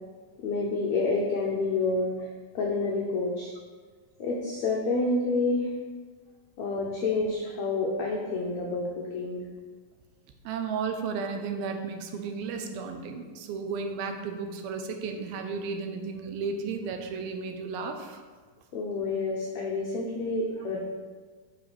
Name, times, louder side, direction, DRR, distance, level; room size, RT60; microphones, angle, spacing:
voice 1, 0.4-2.3 2.5-3.5 4.2-5.7 6.6-9.4 18.7-20.8, left 3 dB, 80° left, -2 dB, 1.5 m, -28 dB
voice 2, 10.4-18.2, right 5 dB, 80° right, 5 dB, 2.4 m, -34 dB
9.3 x 4.3 x 5.0 m, 1.5 s
omnidirectional pair, 4.4 m